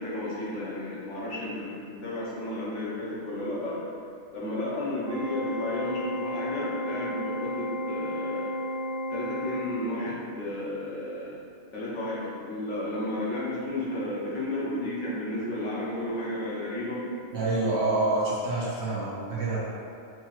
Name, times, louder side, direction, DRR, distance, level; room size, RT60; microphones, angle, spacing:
voice 1, 0.0-3.8 4.3-8.5 9.1-11.5 11.7-17.1, left 1 dB, 65° left, -6 dB, 1.0 m, -33 dB
Organ, 5.1-10.1, left 1 dB, 80° right, 1.2 m, -33 dB
voice 2, 17.3-19.6, right 2 dB, 60° right, -7 dB, 1.0 m, -27 dB
4.6 x 2.2 x 2.9 m, 2.4 s
omnidirectional pair, 1.4 m